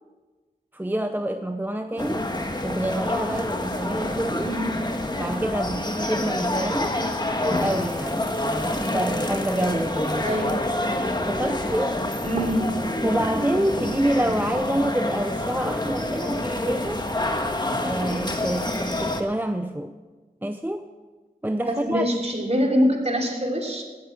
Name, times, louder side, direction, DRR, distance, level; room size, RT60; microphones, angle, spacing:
voice 1, 0.7-2.3 2.6-4.5 5.2-7.0 7.4-10.3 11.3-12.0 13.0-17.1 17.8-19.9 20.4-20.9 21.4-22.1, right 1 dB, 10° right, 7 dB, 0.7 m, -27 dB
sound 1, 2.0-19.2, left 1 dB, 25° left, 1.4 m, -27 dB
voice 2, 4.4-4.9 10.2-10.6 12.2-12.9 21.7-23.8, equal, 40° right, 1 dB, 3.0 m, -24 dB
17.0 x 8.7 x 6.0 m, 1.3 s
wide cardioid pair, 45°, 16 cm